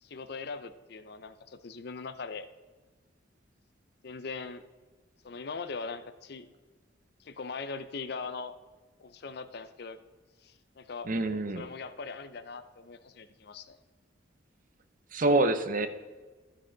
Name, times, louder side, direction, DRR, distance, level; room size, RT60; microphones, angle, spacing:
voice 1, 0.0-2.5 4.0-4.6 5.2-6.5 7.2-8.5 9.0-10.0 10.4-11.1 11.5-13.8, left 4 dB, 55° left, 12 dB, 0.5 m, -40 dB
voice 2, 11.1-11.7 15.1-15.9, right 2 dB, 45° right, 9 dB, 0.7 m, -26 dB
12.5 x 6.2 x 3.9 m, 1.3 s
head